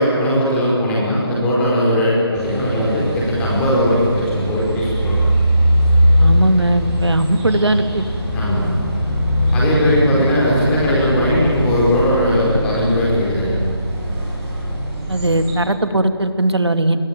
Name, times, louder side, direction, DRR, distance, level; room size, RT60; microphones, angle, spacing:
voice 1, 0.0-5.2 8.3-8.7 9.5-13.5, equal, 5° left, -5 dB, 4.9 m, -18 dB
sound 1, 2.3-15.5, equal, 10° right, 6.9 m, -20 dB
voice 2, 6.2-8.0 15.1-17.0, right 1 dB, 85° right, 8 dB, 2.5 m, -18 dB
30.0 x 21.5 x 9.1 m, 2.1 s
figure-of-eight pair, 165°, 13 cm